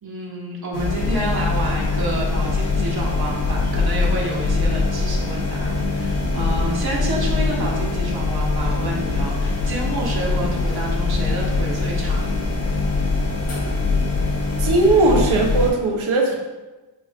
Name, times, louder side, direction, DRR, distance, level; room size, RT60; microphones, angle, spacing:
voice 1, 0.0-12.3 16.3-16.4, right 1 dB, 50° right, -3 dB, 1.8 m, -29 dB
sound 1, 0.7-15.7, left 3 dB, 90° left, 1.4 m, -22 dB
voice 2, 14.6-16.3, right 2 dB, 85° right, 0 dB, 1.3 m, -18 dB
7.8 x 2.7 x 4.9 m, 1.2 s
cardioid pair, 85°, 47 cm